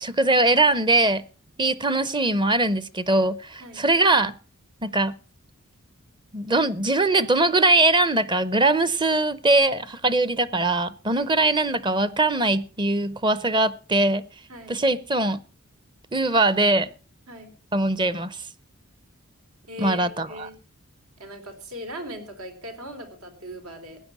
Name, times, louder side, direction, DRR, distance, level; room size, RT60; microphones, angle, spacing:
voice 1, 0.0-1.2 1.6-4.3 4.8-5.2 6.3-14.3 14.7-15.4 16.1-16.9 17.7-18.4 19.8-20.5, right 2 dB, 20° right, 0.6 m, -21 dB
voice 2, 11.1-11.5 14.5-14.7 17.3-17.5 19.7-20.6 21.2-24.0, equal, 80° right, 3.7 m, -39 dB
15.5 x 9.7 x 6.0 m
head